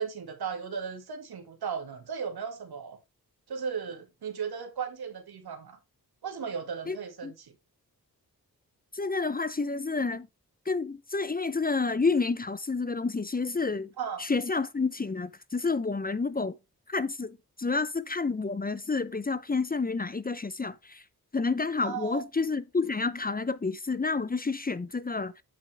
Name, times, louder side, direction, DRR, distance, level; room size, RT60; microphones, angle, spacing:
voice 1, 0.0-3.0 3.5-5.8 6.2-7.5 14.0-14.2 21.8-22.2, right 6 dB, 80° right, 2.1 m, -36 dB
voice 2, 8.9-10.3 10.7-13.9 14.2-16.5 16.9-21.0 21.3-25.3, left 4 dB, 25° left, 0.7 m, -29 dB
8.6 x 7.5 x 3.4 m
cardioid pair, 55°, 37 cm